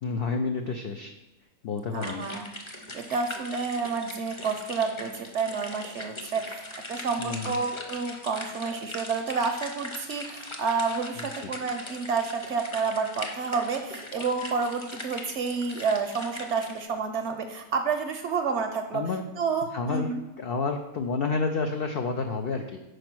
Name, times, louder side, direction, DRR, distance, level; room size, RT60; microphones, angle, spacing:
voice 1, 0.0-1.1 1.6-2.3 7.2-7.6 11.2-11.5 18.9-19.3 19.7-22.8, left 4 dB, 85° left, 4 dB, 0.5 m, -30 dB
voice 2, 1.9-2.5 2.9-6.6 6.9-19.0 19.4-20.2, right 5 dB, 65° right, 6 dB, 0.7 m, -29 dB
sound 1, 2.0-16.8, left 1 dB, 30° left, 0.6 m, -40 dB
5.1 x 5.0 x 6.0 m, 1.0 s
omnidirectional pair, 1.6 m